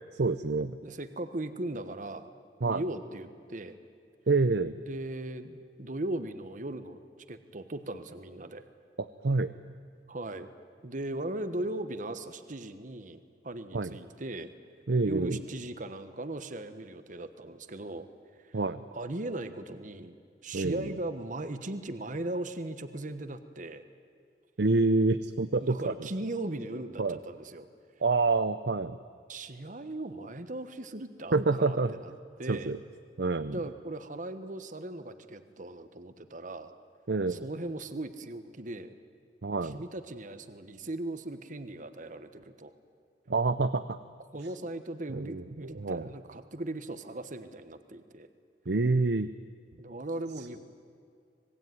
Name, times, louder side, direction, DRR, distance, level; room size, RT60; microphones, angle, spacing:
voice 1, 0.1-0.8 2.6-2.8 4.3-4.8 9.0-9.5 13.7-13.9 14.9-15.4 18.5-18.8 20.5-20.9 24.6-25.8 27.0-27.2 28.0-29.0 31.3-31.9 32.5-32.8 33.2-33.6 37.1-37.5 39.4-39.8 43.3-44.0 45.1-46.1 48.7-49.3, right 3 dB, 70° right, 11 dB, 0.7 m, -27 dB
voice 2, 0.8-2.3 2.6-3.8 4.9-7.0 7.3-8.6 10.1-10.5 10.8-14.5 15.0-18.1 18.4-18.6 18.9-20.1 20.4-23.8 25.6-27.7 29.3-32.1 32.4-32.7 33.5-36.7 37.3-38.9 39.6-42.7 44.3-48.3 49.8-50.6, right 1 dB, 45° right, 10 dB, 1.3 m, -38 dB
26.0 x 20.5 x 9.3 m, 2.2 s
head